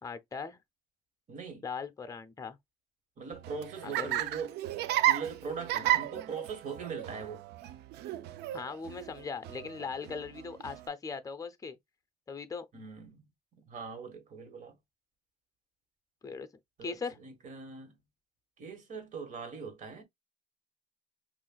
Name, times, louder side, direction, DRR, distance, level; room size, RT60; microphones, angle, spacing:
voice 1, 0.0-0.6 1.6-2.6 3.8-4.2 8.5-11.8 12.3-12.7 16.2-16.5 16.8-17.2, left 5 dB, 20° left, 0.6 m, -39 dB
voice 2, 1.3-1.6 3.2-4.5 5.1-7.4 12.7-13.2 13.6-14.7 16.8-16.9 17.2-18.0 18.6-20.0, right 5 dB, 45° right, 1.6 m, -41 dB
Laughter, 3.3-10.9, right 14 dB, 75° right, 0.4 m, -33 dB
5.5 x 2.5 x 2.3 m
cardioid pair, 110°, 17 cm